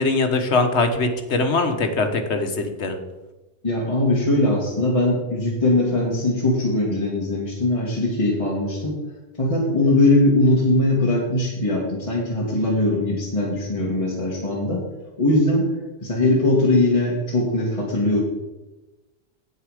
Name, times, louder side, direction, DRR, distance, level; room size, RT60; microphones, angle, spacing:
voice 1, 0.0-3.0, left 3 dB, 75° left, 6 dB, 1.4 m, -22 dB
voice 2, 3.6-9.0 9.4-14.8 15.2-15.7 16.0-18.2, left 2 dB, 30° left, -4 dB, 2.0 m, -20 dB
9.8 x 8.5 x 4.9 m, 1.1 s
omnidirectional pair, 1.2 m